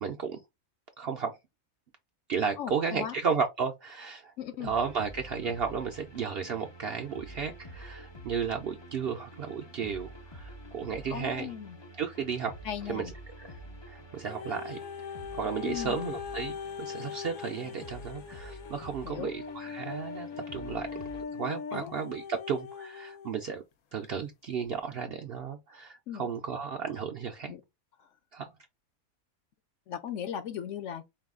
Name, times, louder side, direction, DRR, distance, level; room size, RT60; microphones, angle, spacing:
voice 1, 0.0-0.4 1.0-1.4 2.3-4.3 4.6-11.5 12.0-12.5 12.9-13.1 13.4-13.6 13.8-14.8 15.3-20.9 21.3-23.6 23.9-27.5 28.3-28.5, right 6 dB, 65° right, 0.6 m, -34 dB
voice 2, 2.6-3.2 4.4-4.7 11.1-11.8 12.6-13.1 15.6-16.1 19.0-19.3 21.7-21.9 26.1-26.3 27.5-27.6 28.0-28.1 29.9-31.0, left 9 dB, 65° left, 0.9 m, -37 dB
sound 1, 4.6-21.2, equal, 40° left, 0.4 m, -48 dB
sound 2, 14.3-23.4 24.0-24.1, left 6 dB, 90° left, 1.1 m, -40 dB
4.6 x 2.2 x 3.6 m
omnidirectional pair, 1.5 m